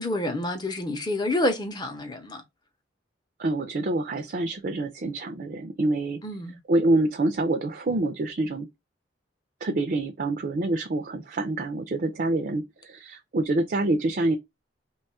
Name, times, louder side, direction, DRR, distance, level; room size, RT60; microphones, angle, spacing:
voice 1, 0.0-2.4 6.2-6.6, left 1 dB, 25° left, 0.6 m, -28 dB
voice 2, 3.4-6.2 6.7-8.7 9.6-12.6 12.9-14.4, right 2 dB, 50° right, 0.5 m, -26 dB
3.0 x 2.3 x 4.1 m
head